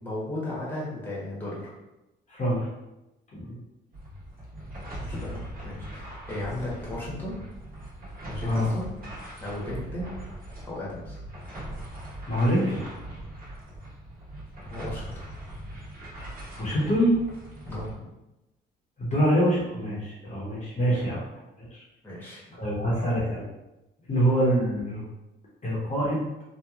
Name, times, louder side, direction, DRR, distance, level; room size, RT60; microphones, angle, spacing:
voice 1, 0.0-1.7 5.0-7.4 8.3-8.9 9.4-10.1 10.7-11.2 14.6-15.2 17.6-17.9 22.0-22.4, left 1 dB, 10° left, -6 dB, 1.1 m, -35 dB
voice 2, 2.3-2.7 3.3-3.6 8.4-8.7 12.3-12.8 16.6-17.1 19.0-21.2 21.6-21.8 22.5-23.4 24.1-25.0 25.6-26.3, equal, 35° left, -6 dB, 0.9 m, -25 dB
sound 1, 3.9-17.9, right 1 dB, 45° right, 1.3 m, -40 dB
2.9 x 2.2 x 2.4 m, 0.96 s
cardioid pair, 90°, 20 cm